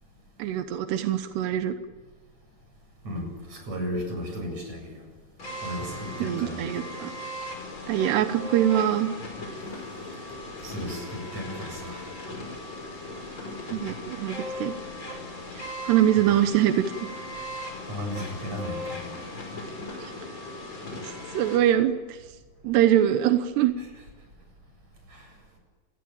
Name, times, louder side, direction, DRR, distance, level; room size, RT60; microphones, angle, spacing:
voice 1, 0.4-1.8 6.2-7.1 7.9-9.1 13.7-14.7 15.5-16.8 20.0-20.1 21.3-22.2 22.6-23.7, right 11 dB, 90° right, 8 dB, 3.2 m, -23 dB
voice 2, 3.0-5.1 5.6-6.8 10.6-12.1 17.8-19.2 25.1-25.4, equal, 40° right, 3 dB, 9.0 m, -35 dB
sound 1, 5.4-21.6, left 1 dB, 30° left, 6.4 m, -38 dB
29.5 x 20.0 x 8.8 m, 1.4 s
omnidirectional pair, 4.7 m